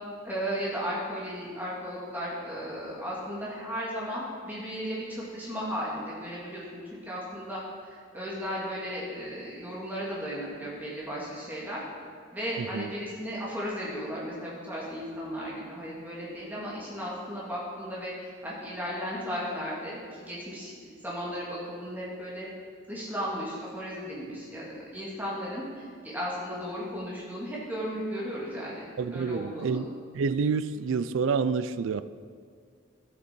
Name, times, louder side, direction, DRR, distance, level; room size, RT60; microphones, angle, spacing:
voice 1, 0.2-11.8 12.3-20.7 21.0-22.5 22.9-29.8, equal, 10° right, -6 dB, 2.0 m, -35 dB
voice 2, 12.6-12.9 29.0-29.9 30.1-32.0, right 5 dB, 70° right, 14 dB, 0.4 m, -28 dB
12.5 x 8.2 x 4.5 m, 2.1 s
head